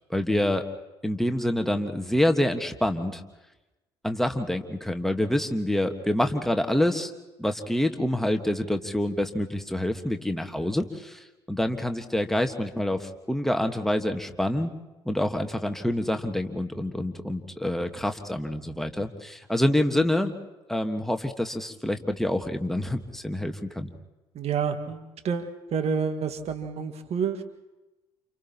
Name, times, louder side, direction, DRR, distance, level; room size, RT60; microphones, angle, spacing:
voice 1, 0.1-0.6 1.0-3.2 4.0-7.1 7.4-14.7 15.0-20.3 20.7-23.9, left 1 dB, ahead, 5 dB, 1.5 m, -27 dB
voice 2, 24.4-27.4, right 6 dB, 50° right, 7 dB, 1.8 m, -29 dB
29.5 x 29.5 x 3.0 m, 1.1 s
hypercardioid pair, 55°, 13 cm